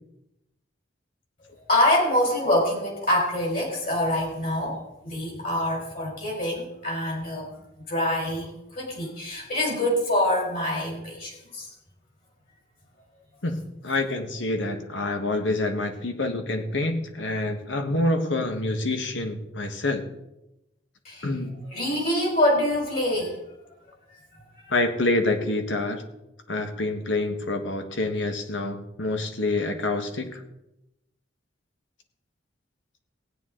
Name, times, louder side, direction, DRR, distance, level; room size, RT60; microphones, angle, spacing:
voice 1, 1.6-7.5 7.9-11.7 21.0-21.3 21.7-23.4 24.6-24.7, left 1 dB, 50° left, -1 dB, 4.0 m, -25 dB
voice 2, 13.4-20.1 21.2-21.5 24.7-26.0 26.5-30.4, left 2 dB, 75° left, 6 dB, 1.4 m, -27 dB
16.5 x 9.4 x 3.8 m, 0.90 s
head